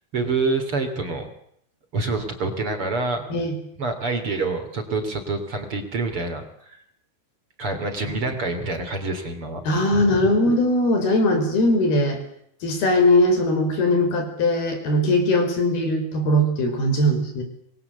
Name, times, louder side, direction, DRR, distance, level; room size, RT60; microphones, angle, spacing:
voice 1, 0.1-1.3 1.9-3.2 3.8-6.8 7.6-9.6 9.9-10.3, right 3 dB, 35° right, 6 dB, 3.8 m, -27 dB
voice 2, 9.7-12.2 12.6-17.4, left 1 dB, 80° left, 6 dB, 7.1 m, -20 dB
26.5 x 21.5 x 8.2 m, 0.70 s
omnidirectional pair, 4.4 m